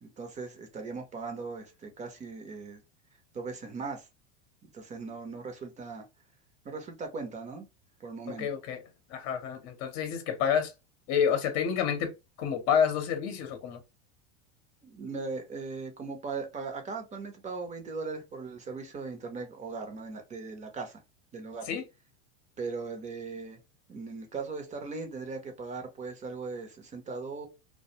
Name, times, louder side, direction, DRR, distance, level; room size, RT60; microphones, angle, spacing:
voice 1, 0.0-2.8 3.3-4.1 4.6-6.1 6.6-7.7 8.0-8.5 14.8-21.0 21.3-21.7 22.6-23.6 23.9-27.5, right 4 dB, 20° right, 0.7 m, -39 dB
voice 2, 8.3-8.8 9.1-10.7 11.1-12.1 12.4-13.8 21.7-21.8, left 8 dB, 50° left, 0.8 m, -28 dB
2.2 x 2.2 x 2.8 m
hypercardioid pair, 110°, 35 cm